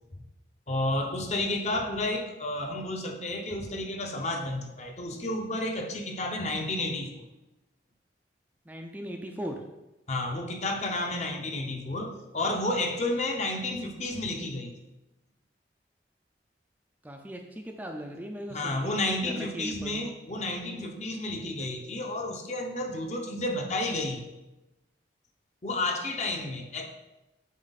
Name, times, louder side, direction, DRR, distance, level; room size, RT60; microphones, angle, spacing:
voice 1, 0.7-7.3 10.1-14.7 18.5-24.2 25.6-26.9, left 2 dB, 40° left, 4 dB, 0.8 m, -31 dB
voice 2, 8.7-9.6 17.0-20.1, equal, 10° right, 3 dB, 0.4 m, -38 dB
7.5 x 4.5 x 4.0 m, 0.98 s
head